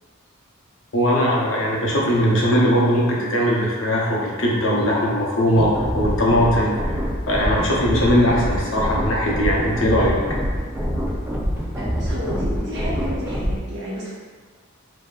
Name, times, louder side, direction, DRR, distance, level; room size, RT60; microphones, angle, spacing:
voice 1, 0.9-7.0 7.3-10.1, equal, 65° left, -4 dB, 0.8 m, -20 dB
sound 1, 5.6-13.6, equal, 10° right, 0.5 m, -25 dB
voice 2, 11.8-14.1, equal, 55° right, -7 dB, 1.1 m, -31 dB
5.2 x 2.8 x 2.4 m, 1.5 s
head